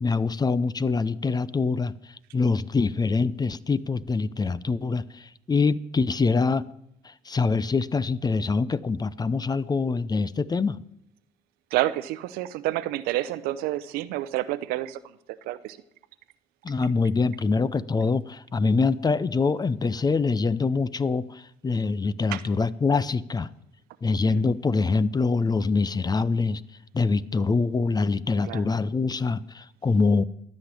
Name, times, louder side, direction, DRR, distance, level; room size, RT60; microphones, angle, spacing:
voice 1, 0.0-1.9 2.3-6.6 7.0-10.8 16.6-23.5 24.0-26.6 26.9-30.2, left 4 dB, 25° left, 0.7 m, -24 dB
voice 2, 11.7-15.0 15.5-15.8 22.3-22.4 24.2-24.5 28.5-28.6, right 15 dB, 85° right, 0.7 m, -29 dB
13.0 x 6.5 x 9.8 m
supercardioid pair, 70°, 15 cm